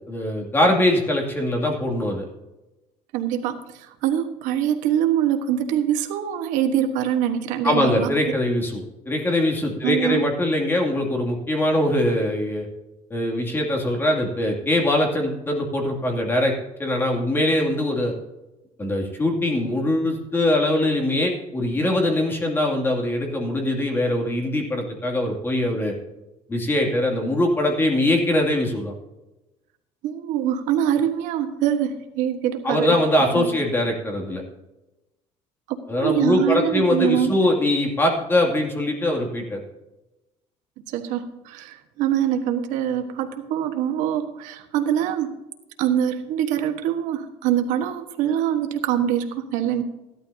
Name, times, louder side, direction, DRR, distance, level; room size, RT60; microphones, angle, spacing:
voice 1, 0.1-2.3 7.6-12.7 13.1-16.5 16.8-18.1 18.8-25.9 26.5-28.9 32.6-34.4 35.9-39.6, left 1 dB, 15° left, 1 dB, 2.6 m, -22 dB
voice 2, 3.1-8.1 9.8-10.2 30.0-33.0 33.3-33.5 35.7-37.5 40.9-45.3 45.8-49.8, right 10 dB, 85° right, 7 dB, 1.4 m, -24 dB
15.5 x 12.0 x 2.8 m, 1.0 s
cardioid pair, 150°, 13 cm